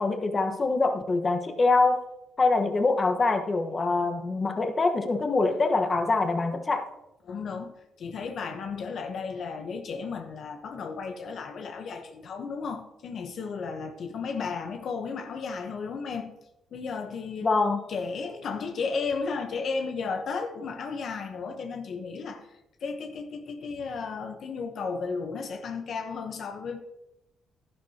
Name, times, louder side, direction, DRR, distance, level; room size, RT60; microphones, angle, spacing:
voice 1, 0.0-2.0 2.4-6.9 17.4-17.8, left 3 dB, 35° left, 1.3 m, -24 dB
voice 2, 7.2-16.3 16.7-17.5 17.9-22.5 22.8-26.8, left 5 dB, 60° left, 1.0 m, -34 dB
11.5 x 11.0 x 2.9 m
cardioid pair, 90°, 0 cm